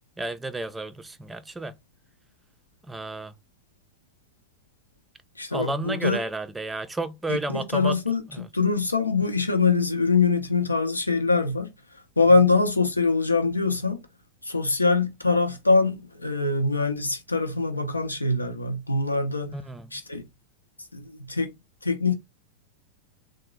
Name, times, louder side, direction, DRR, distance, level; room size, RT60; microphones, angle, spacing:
voice 1, 0.2-1.7 2.9-3.3 5.5-8.0 8.3-8.5 19.5-19.9, right 2 dB, 10° right, 0.4 m, -32 dB
voice 2, 5.4-6.2 7.3-11.7 12.2-14.0 14.4-19.5 19.9-20.2 20.9-21.5 21.8-22.1, left 3 dB, 80° left, 0.7 m, -23 dB
3.7 x 2.0 x 3.2 m
figure-of-eight pair, 90°, 0 cm